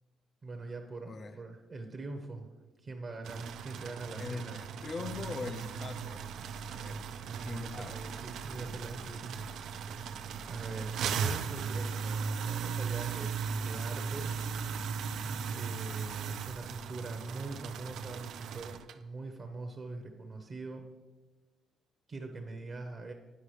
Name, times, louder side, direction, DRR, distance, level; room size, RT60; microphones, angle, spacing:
voice 1, 0.4-2.5 2.8-4.6 7.2-9.4 10.5-14.3 15.5-20.8 22.1-23.1, right 3 dB, 35° right, 0.7 m, -43 dB
voice 2, 1.1-1.4 4.2-6.3 6.7-7.1 7.4-8.0, left 3 dB, 35° left, 0.5 m, -42 dB
sound 1, 3.2-18.9, right 6 dB, 75° right, 0.4 m, -37 dB
10.0 x 4.8 x 3.2 m
cardioid pair, 105°, 0 cm